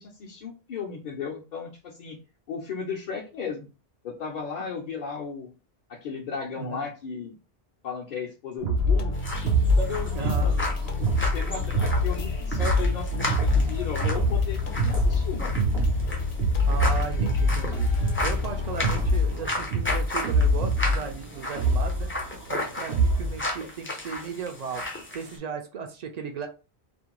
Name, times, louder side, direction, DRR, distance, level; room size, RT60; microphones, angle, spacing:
voice 1, 0.0-2.2 2.5-3.7 4.0-5.5 5.9-7.4 7.8-9.2 9.8-15.6, left 5 dB, 55° left, -3 dB, 0.6 m, -35 dB
voice 2, 6.6-6.9 10.1-10.5 16.7-17.9 18.2-22.1 22.5-24.8 25.1-26.5, right 6 dB, 55° right, 5 dB, 0.5 m, -36 dB
sound 1, 8.6-23.4, equal, 75° right, 0.8 m, -25 dB
sound 2, 8.8-19.1, left 4 dB, 90° left, 0.8 m, -32 dB
sound 3, 9.1-25.4, left 1 dB, 20° left, 0.4 m, -35 dB
2.5 x 2.1 x 2.9 m, 0.32 s
omnidirectional pair, 1.0 m